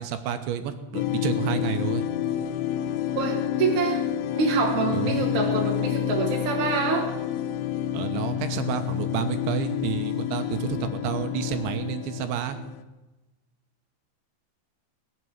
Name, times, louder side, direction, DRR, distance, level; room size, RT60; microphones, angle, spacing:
voice 1, 0.0-2.1 4.9-5.3 7.9-12.6, right 9 dB, 75° right, 8 dB, 3.3 m, -30 dB
sound 1, 0.9-12.8, left 11 dB, 80° left, 2.4 m, -29 dB
voice 2, 3.1-4.0 4.3-7.1, right 5 dB, 50° right, 0 dB, 2.5 m, -26 dB
20.0 x 7.7 x 9.3 m, 1.1 s
omnidirectional pair, 5.5 m